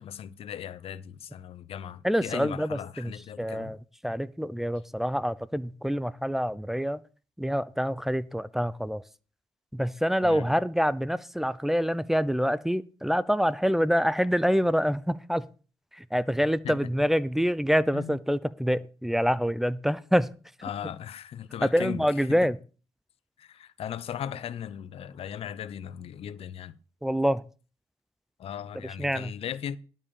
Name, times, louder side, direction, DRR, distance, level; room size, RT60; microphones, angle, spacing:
voice 1, 0.0-3.7 10.2-10.5 16.6-16.8 17.9-18.2 20.6-22.0 22.3-22.4 23.4-26.8 28.4-29.8, left 9 dB, 70° left, 0.6 m, -37 dB
voice 2, 2.0-3.1 3.4-3.8 4.0-7.0 7.4-9.0 9.7-15.4 15.9-20.3 21.6-22.6 27.0-27.4 29.0-29.3, equal, 5° right, 0.6 m, -26 dB
12.0 x 5.5 x 7.0 m
cardioid pair, 90°, 10 cm